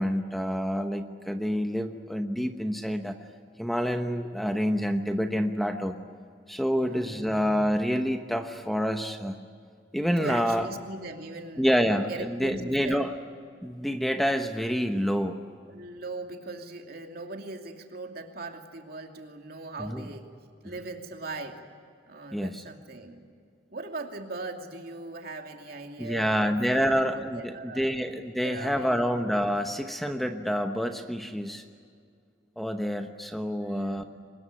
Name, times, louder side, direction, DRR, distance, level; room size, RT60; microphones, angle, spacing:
voice 1, 0.0-3.2 3.6-6.0 6.5-9.4 9.9-10.7 11.6-13.1 13.6-15.4 19.8-20.1 22.3-22.6 26.0-31.6 32.6-34.0, equal, ahead, 6 dB, 1.0 m, -27 dB
voice 2, 6.7-7.4 10.2-11.7 12.1-13.1 15.7-20.3 20.6-21.6 22.1-23.2 23.7-27.9 28.4-29.1 33.6-34.0, right 2 dB, 60° right, 3 dB, 2.7 m, -40 dB
24.0 x 20.5 x 9.9 m, 2.1 s
head